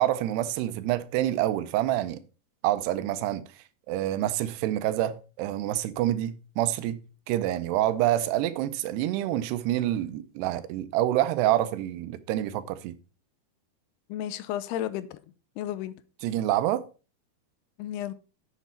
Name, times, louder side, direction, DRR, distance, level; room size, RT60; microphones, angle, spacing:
voice 1, 0.0-2.2 2.6-7.0 7.3-13.0 16.2-16.8, right 13 dB, 85° right, 2.8 m, -27 dB
voice 2, 14.1-15.2 15.6-16.0 17.8-18.1, left 12 dB, 80° left, 2.6 m, -32 dB
8.3 x 7.9 x 4.4 m
omnidirectional pair, 4.7 m